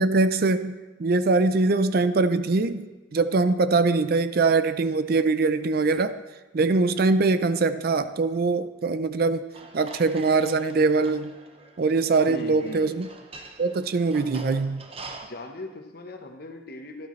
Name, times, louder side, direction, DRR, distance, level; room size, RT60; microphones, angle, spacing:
voice 1, 0.0-6.2 6.5-9.5 9.7-11.3 11.8-13.1 13.6-14.9, right 3 dB, 50° right, 12 dB, 0.4 m, -22 dB
sound 1, 9.5-15.3, right 3 dB, 30° right, 0.8 m, -45 dB
voice 2, 12.3-13.0 15.2-17.1, left 1 dB, 50° left, 5 dB, 1.0 m, -39 dB
13.0 x 12.0 x 3.2 m, 1.2 s
head